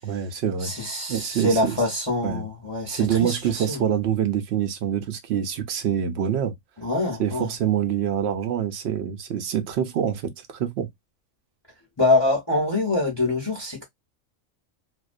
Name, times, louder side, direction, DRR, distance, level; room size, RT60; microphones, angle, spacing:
voice 1, 0.0-0.7 1.1-1.8 2.2-2.5 2.9-6.6 7.2-10.9, right 9 dB, 60° right, 0.8 m, -25 dB
voice 2, 0.6-3.8 6.8-7.5 12.0-13.8, left 2 dB, 25° left, 0.7 m, -24 dB
2.5 x 2.1 x 2.4 m
omnidirectional pair, 1.3 m